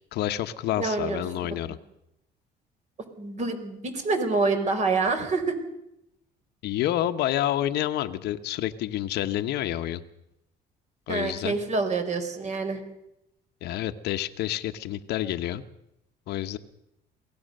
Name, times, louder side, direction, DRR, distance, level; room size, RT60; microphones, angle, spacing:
voice 1, 0.1-1.8 6.6-10.0 11.1-11.6 13.6-15.6 16.3-16.6, left 13 dB, 75° left, 9 dB, 1.1 m, -28 dB
voice 2, 0.8-1.5 3.2-5.6 11.1-12.8, right 3 dB, 45° right, 7 dB, 4.3 m, -27 dB
22.5 x 17.5 x 6.6 m, 0.84 s
cardioid pair, 110°, 17 cm